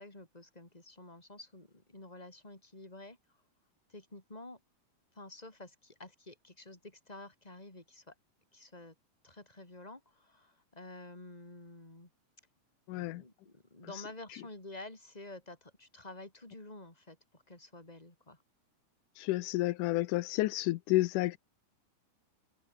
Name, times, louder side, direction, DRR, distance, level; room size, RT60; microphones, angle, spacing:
voice 1, 0.0-3.4 3.9-4.6 5.1-8.1 8.5-8.9 9.2-12.1 12.9-18.4, left 2 dB, 10° left, 4.4 m, -50 dB
voice 2, 12.9-13.2 19.2-21.4, left 18 dB, 90° left, 2.3 m, -30 dB
omnidirectional pair, 3.6 m